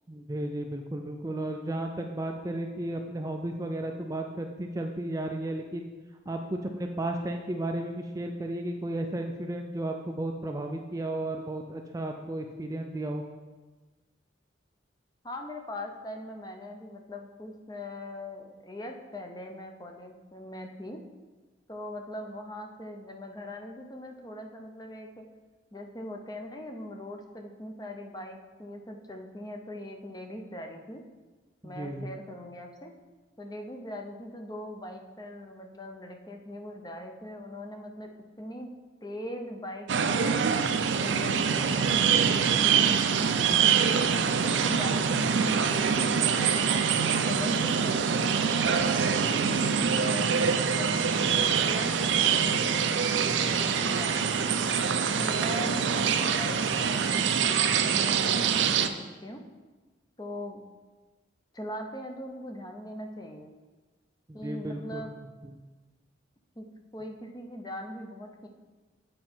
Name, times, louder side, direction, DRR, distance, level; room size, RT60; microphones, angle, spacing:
voice 1, 0.1-5.9 6.3-13.2 31.6-32.1 64.3-65.0 65.4-65.6, right 1 dB, 20° right, 4 dB, 0.3 m, -34 dB
voice 2, 15.2-21.0 21.7-25.2 25.7-31.0 31.6-32.9 33.4-38.1 38.4-38.7 39.0-43.7 44.4-48.7 49.1-52.7 53.1-54.7 55.2-58.9 59.2-59.4 60.2-60.6 61.5-63.5 64.3-65.1 66.6-66.7 66.9-68.5, left 1 dB, 20° left, 3 dB, 0.6 m, -41 dB
sound 1, 39.9-58.9, right 6 dB, 80° right, 0.5 m, -25 dB
7.7 x 5.2 x 4.4 m, 1.3 s
head